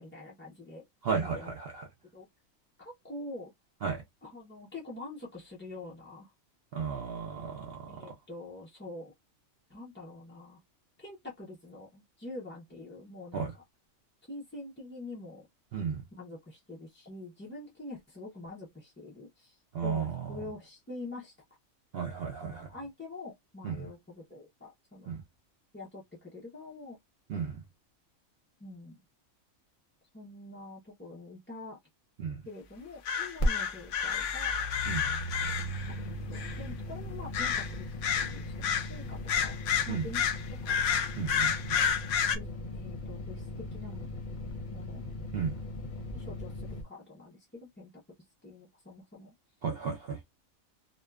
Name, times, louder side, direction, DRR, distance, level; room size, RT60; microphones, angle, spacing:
voice 1, 0.0-0.8 1.2-1.5 2.1-2.3 2.8-3.5 4.2-6.3 7.9-9.1 9.7-10.6 11.0-13.5 14.3-15.5 16.1-21.3 22.4-25.2 25.7-27.0 28.6-29.0 30.1-31.8 32.4-34.8 36.0-37.9 38.1-39.5 39.8-40.3 40.6-40.7 42.3-44.0 44.7-45.0 46.1-48.0 48.4-49.3, left 2 dB, 15° left, 0.4 m, -45 dB
voice 2, 1.0-1.9 3.8-4.0 6.7-8.1 13.3-13.5 15.7-16.0 19.7-20.4 21.9-22.7 23.6-23.9 25.1-25.2 27.3-27.6 32.2-32.4 34.9-35.1 39.9-40.1 41.2-41.8 45.3-45.6 49.6-50.2, right 6 dB, 60° right, 0.7 m, -34 dB
sound 1, 33.1-36.0 36.3-36.6 37.3-37.7 38.0-38.9 39.3-42.4, left 7 dB, 70° left, 0.9 m, -30 dB
sound 2, 33.4-33.5 33.8-46.8, left 1 dB, 40° left, 0.8 m, -38 dB
2.6 x 2.2 x 2.3 m
omnidirectional pair, 1.4 m